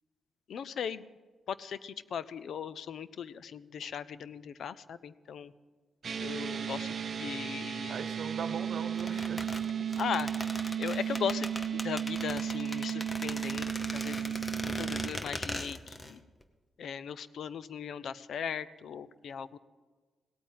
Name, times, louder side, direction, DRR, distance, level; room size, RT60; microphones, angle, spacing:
voice 1, 0.5-1.0 1.5-5.5 6.2-8.0 9.1-9.2 10.0-10.3 10.8-16.2 16.8-19.6, left 7 dB, 65° left, 16 dB, 0.5 m, -38 dB
sound 1, 6.0-15.1, right 8 dB, 40° right, 0.6 m, -34 dB
voice 2, 7.9-9.5, right 6 dB, 55° right, 10 dB, 1.0 m, -40 dB
sound 2, 9.0-16.1 16.4-16.5, left 1 dB, 15° left, 0.8 m, -39 dB
17.0 x 8.9 x 7.4 m, 1.4 s
wide cardioid pair, 170°, 0 cm